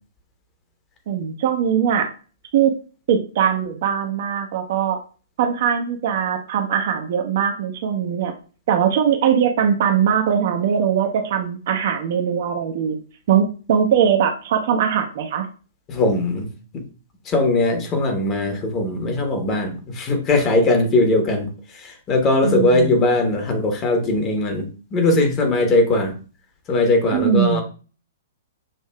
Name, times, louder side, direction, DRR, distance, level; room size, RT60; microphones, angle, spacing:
voice 1, 1.1-2.1 2.5-2.7 3.1-5.0 5.4-8.3 8.7-13.0 13.3-15.5 22.4-23.0 27.1-27.6, right 8 dB, 50° right, 5 dB, 0.6 m, -20 dB
voice 2, 15.9-16.5 16.7-16.8 17.2-26.2 26.7-27.6, left 2 dB, 25° left, 4 dB, 1.0 m, -20 dB
6.4 x 2.7 x 2.2 m, 0.36 s
figure-of-eight pair, 110°, 0 cm